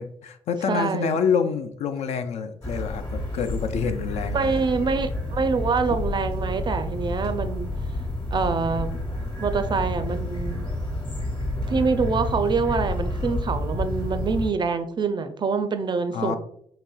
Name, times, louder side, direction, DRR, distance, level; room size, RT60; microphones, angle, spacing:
voice 1, 0.0-4.6 16.1-16.4, left 6 dB, 55° left, 8 dB, 0.4 m, -27 dB
voice 2, 0.7-1.2 4.3-7.7 8.3-8.9 9.4-10.7 11.7-16.4, right 5 dB, 35° right, 9 dB, 0.4 m, -25 dB
sound 1, 2.6-14.5, left 1 dB, 35° left, 1.2 m, -29 dB
4.2 x 2.9 x 2.2 m, 0.67 s
hypercardioid pair, 45°, 13 cm